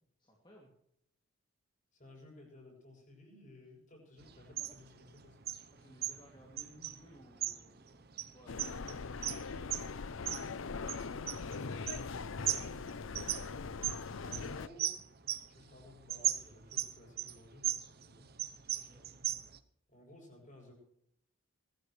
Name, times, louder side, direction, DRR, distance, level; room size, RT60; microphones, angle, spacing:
voice 1, 0.2-0.7 5.7-9.6 12.5-13.0 18.7-19.1, equal, 20° left, -1 dB, 2.6 m, -60 dB
voice 2, 1.9-5.4 14.1-15.0 15.5-18.3 18.7-18.9 19.9-20.7, left 1 dB, 35° left, 0 dB, 7.9 m, -56 dB
sound 1, 4.2-19.6, right 12 dB, 45° right, 0.8 m, -39 dB
sound 2, 8.5-14.7, left 4 dB, 70° left, 0.6 m, -41 dB
22.0 x 14.5 x 3.3 m, 0.72 s
head